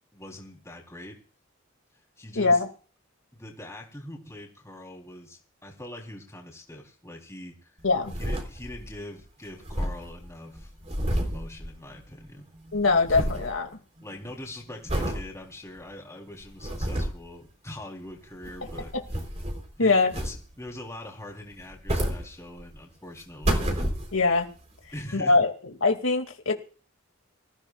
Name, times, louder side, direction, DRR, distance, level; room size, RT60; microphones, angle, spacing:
voice 1, 0.1-1.2 2.2-2.6 3.3-7.7 8.2-10.7 11.2-12.5 14.0-18.9 19.8-23.7 24.9-25.4, left 1 dB, 15° left, 0 dB, 3.6 m, -43 dB
voice 2, 2.4-2.7 7.8-8.1 12.7-13.7 19.8-20.2 24.1-24.5 25.1-25.5 25.8-26.5, left 3 dB, 90° left, 4 dB, 2.4 m, -22 dB
sound 1, 7.8-9.0 9.2-9.3 9.5-12.3 12.5-13.5 14.0-14.3 14.9-15.2 15.8-15.9 16.4-17.3 18.3-19.7 20.1-20.7 21.5-22.8 23.2-24.4 25.0-25.1, equal, 35° right, 3.8 m, -30 dB
24.0 x 15.0 x 2.4 m, 0.39 s
head